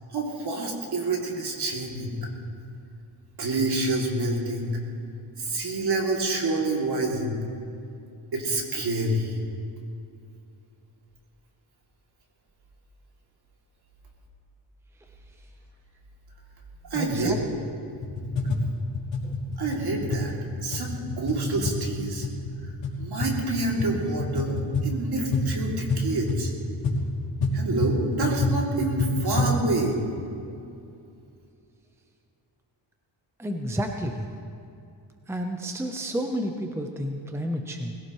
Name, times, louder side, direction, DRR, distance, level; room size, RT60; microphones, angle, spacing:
voice 1, 0.1-2.3 3.4-4.7 5.4-7.4 8.3-9.4 16.9-17.4 19.6-20.3 20.6-22.3 22.6-22.7 23.0-24.6 24.8-26.5 27.5-30.0, right 2 dB, 55° right, -1 dB, 3.0 m, -27 dB
voice 2, 16.9-17.4 19.2-19.4 33.4-34.3 35.3-37.9, equal, 5° right, 4 dB, 0.9 m, -30 dB
sound 1, 17.9-29.6, left 2 dB, 80° left, 3.0 m, -28 dB
21.0 x 16.5 x 3.2 m, 2.5 s
cardioid pair, 110°, 45 cm